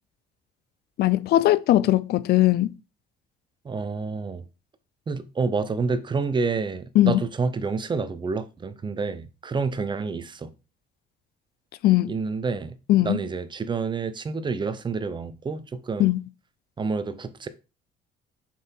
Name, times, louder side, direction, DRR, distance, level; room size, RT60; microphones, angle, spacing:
voice 1, 1.0-2.7 7.0-7.2 11.8-12.1 12.9-13.2 16.0-16.2, left 15 dB, 70° left, 0.6 m, -19 dB
voice 2, 3.6-4.5 5.1-10.5 12.1-12.8 13.0-16.1 16.8-17.5, right 4 dB, 25° right, 0.9 m, -28 dB
7.3 x 5.7 x 4.5 m
cardioid pair, 110°, 17 cm